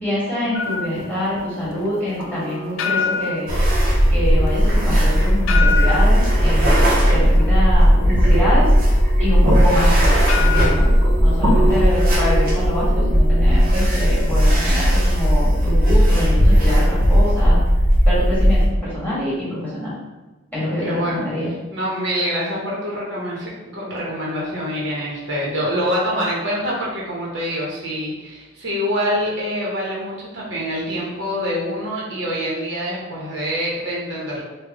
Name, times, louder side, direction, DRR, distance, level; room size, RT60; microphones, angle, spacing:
voice 1, 0.0-3.5 4.1-8.7 9.2-9.9 10.3-10.9 11.2-17.6 18.0-19.9 20.5-21.5, left 1 dB, 10° left, -10 dB, 1.4 m, -25 dB
sound 1, 0.5-11.9, left 6 dB, 80° left, 0.3 m, -28 dB
sound 2, 2.2-16.1 17.9-18.0, equal, 90° right, 1.0 m, -30 dB
sound 3, 3.5-18.7, equal, 45° right, 0.7 m, -16 dB
voice 2, 11.5-11.9 20.8-21.4 21.7-34.4, equal, 70° right, -5 dB, 0.9 m, -25 dB
3.3 x 2.2 x 3.4 m, 1.1 s
head